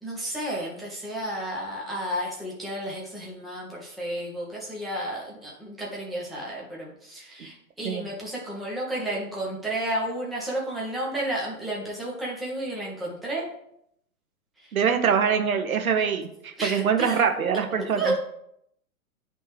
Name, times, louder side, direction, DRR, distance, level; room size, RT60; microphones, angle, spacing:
voice 1, 0.0-13.5 16.6-17.2 18.0-18.2, right 1 dB, ahead, -4 dB, 0.5 m, -32 dB
voice 2, 14.7-18.1, right 7 dB, 65° right, 6 dB, 1.0 m, -24 dB
9.6 x 3.3 x 3.3 m, 0.75 s
figure-of-eight pair, 115°, 44 cm